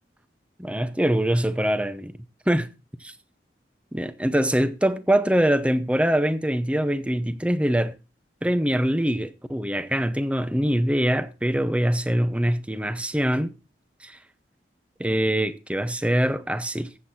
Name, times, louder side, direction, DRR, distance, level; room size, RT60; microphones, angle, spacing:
voice 1, 0.6-2.1 2.5-2.7 3.0-3.1 3.9-7.9 8.4-13.5 14.0-14.2 15.0-16.9, right 1 dB, 5° right, 0.7 m, -23 dB
14.0 x 8.0 x 4.2 m
head